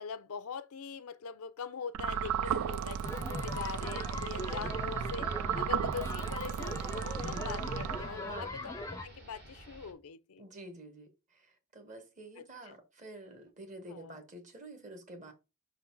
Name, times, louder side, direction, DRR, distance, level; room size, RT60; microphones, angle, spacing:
voice 1, 0.0-5.3 5.5-8.7 9.0-10.4 12.4-12.8 13.9-14.2, left 6 dB, 85° left, 0.6 m, -42 dB
sound 1, 1.9-8.4, right 8 dB, 85° right, 0.3 m, -35 dB
sound 2, 2.1-9.9, right 1 dB, 50° right, 1.9 m, -54 dB
sound 3, 3.0-9.1, left 1 dB, 15° left, 0.6 m, -40 dB
voice 2, 8.1-8.5 10.4-15.3, right 1 dB, 35° right, 1.2 m, -49 dB
5.4 x 3.9 x 4.5 m
head